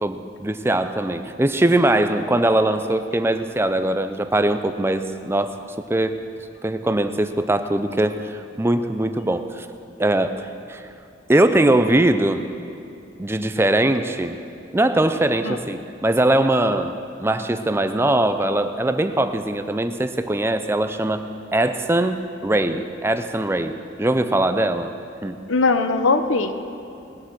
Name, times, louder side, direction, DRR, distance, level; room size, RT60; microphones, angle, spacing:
voice 1, 0.0-6.2 6.6-9.7 10.0-10.8 11.3-12.4 13.2-14.4 14.7-16.9 17.2-21.2 21.5-24.9 25.2-25.4, right 1 dB, 10° right, 9 dB, 0.4 m, -21 dB
voice 2, 25.5-26.5, left 3 dB, 90° left, 9 dB, 0.8 m, -19 dB
19.5 x 8.1 x 6.2 m, 2.6 s
head